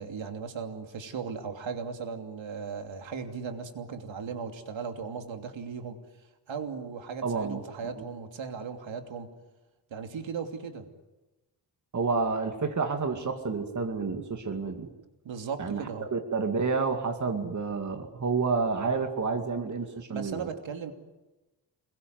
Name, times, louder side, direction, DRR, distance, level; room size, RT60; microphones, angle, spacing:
voice 1, 0.0-6.0 6.5-9.3 9.9-10.9 15.2-16.1 20.1-20.9, right 5 dB, 80° right, 5 dB, 3.0 m, -37 dB
voice 2, 7.2-7.6 8.0-8.1 11.9-14.9 15.6-15.8 16.1-20.5, right 4 dB, 40° right, 5 dB, 2.3 m, -29 dB
28.5 x 21.5 x 9.5 m, 1.1 s
wide cardioid pair, 145°, 45 cm